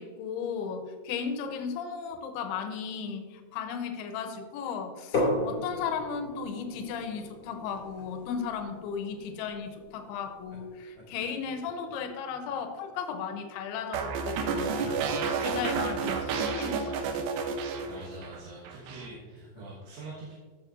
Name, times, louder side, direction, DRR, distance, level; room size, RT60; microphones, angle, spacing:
voice 1, 0.0-14.9 15.4-17.3, left 6 dB, 80° left, 6 dB, 2.5 m, -35 dB
sound 1, 5.1-10.8, left 1 dB, 30° left, 2.3 m, -35 dB
sound 2, 7.5-8.0 8.4-8.5 9.1-9.3 10.5-10.6 10.9-11.9 12.4-12.9 13.5-13.6 14.7-15.7 15.9-16.0 16.2-16.3 16.8-16.9 17.1-18.5 19.1-19.6, equal, 10° right, 1.4 m, -50 dB
sound 3, 13.9-18.4 18.7-19.1, right 5 dB, 90° right, 3.3 m, -30 dB
voice 2, 17.9-20.3, right 2 dB, 65° right, -6 dB, 3.3 m, -44 dB
15.5 x 6.7 x 2.6 m, 1.4 s
omnidirectional pair, 5.3 m